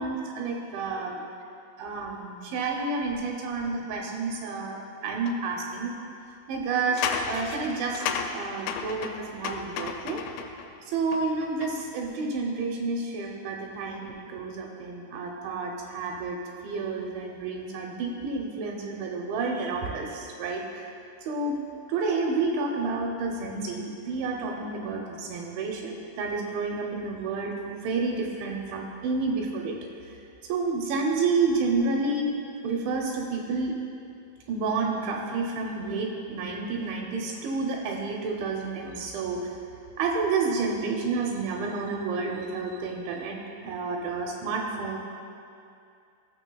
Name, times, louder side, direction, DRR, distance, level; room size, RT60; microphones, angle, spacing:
voice 1, 0.0-1.2 1.8-6.0 6.5-8.0 8.3-10.2 10.9-16.4 16.6-20.8 21.2-21.6 21.9-29.8 30.5-32.3 32.6-33.8 34.5-39.4 40.0-43.4 43.6-45.0, right 4 dB, 80° right, 0 dB, 2.9 m, -30 dB
sound 1, 5.3-5.4 6.8-10.7 11.1-11.9, left 7 dB, 85° left, 2.8 m, -34 dB
14.5 x 6.7 x 2.3 m, 2.5 s
omnidirectional pair, 5.3 m